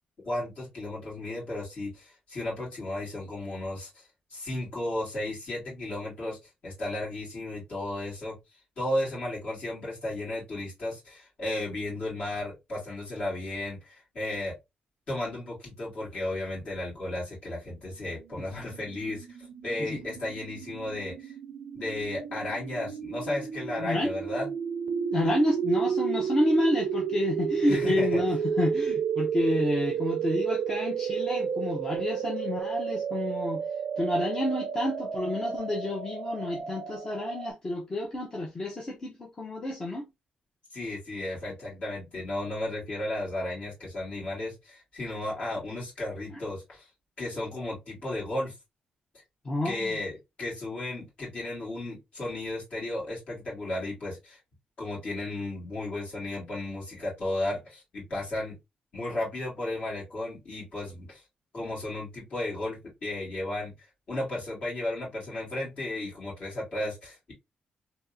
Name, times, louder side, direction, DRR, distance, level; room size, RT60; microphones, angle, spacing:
voice 1, 0.2-6.4 6.6-8.3 8.8-14.5 15.1-21.3 21.7-24.5 27.7-28.2 40.7-46.9 47.2-48.5 49.1-49.2 49.6-50.1 50.4-54.4 54.8-58.6 58.9-61.2 61.5-63.7 64.1-67.3, left 1 dB, 50° left, 2.4 m, -34 dB
sound 1, 18.4-37.5, right 7 dB, 70° right, 0.4 m, -32 dB
voice 2, 23.8-24.1 25.1-33.6 34.0-40.1 49.4-50.0, left 1 dB, 25° left, 0.6 m, -29 dB
3.5 x 2.8 x 2.5 m
wide cardioid pair, 170°, 3 cm